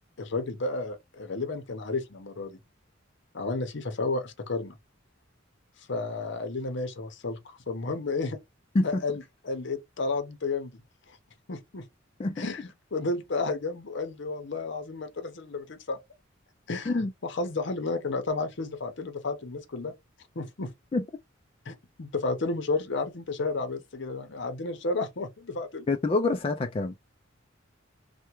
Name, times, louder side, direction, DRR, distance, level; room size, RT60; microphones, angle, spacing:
voice 1, 0.2-2.6 3.3-4.7 5.9-8.4 8.8-10.8 11.1-11.2 11.5-11.9 12.4-16.0 16.7-19.9 20.3-20.7 21.7-25.9, left 3 dB, 60° left, 0.8 m, -32 dB
voice 2, 25.9-27.1, left 3 dB, 30° left, 0.3 m, -26 dB
3.4 x 2.2 x 3.0 m
head